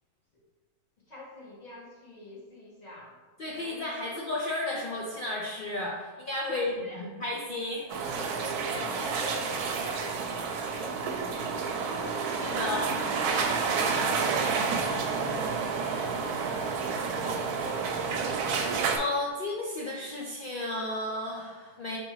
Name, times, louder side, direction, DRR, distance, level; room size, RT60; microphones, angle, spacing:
voice 1, 1.1-3.2 3.6-3.8 6.4-7.0 8.2-12.2 14.0-17.8, left 2 dB, 30° left, -4 dB, 1.1 m, -46 dB
voice 2, 3.4-7.9 12.4-13.0 18.9-22.0, left 2 dB, 80° left, -3 dB, 0.4 m, -33 dB
sound 1, 7.9-19.0, right 5 dB, 85° right, 1.1 m, -30 dB
5.0 x 3.5 x 3.0 m, 1.4 s
omnidirectional pair, 1.6 m